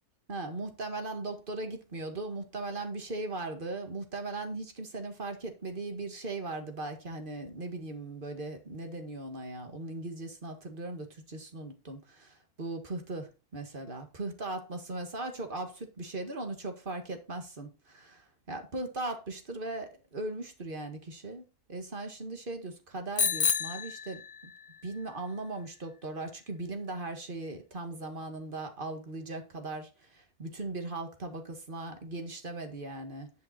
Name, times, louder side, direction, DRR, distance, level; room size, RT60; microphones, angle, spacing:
voice 1, 0.3-24.5 24.8-33.3, right 2 dB, 35° right, 2.0 m, -38 dB
Bicycle bell, 23.2-24.7, left 6 dB, 45° left, 0.9 m, -30 dB
11.0 x 5.8 x 4.3 m
omnidirectional pair, 1.7 m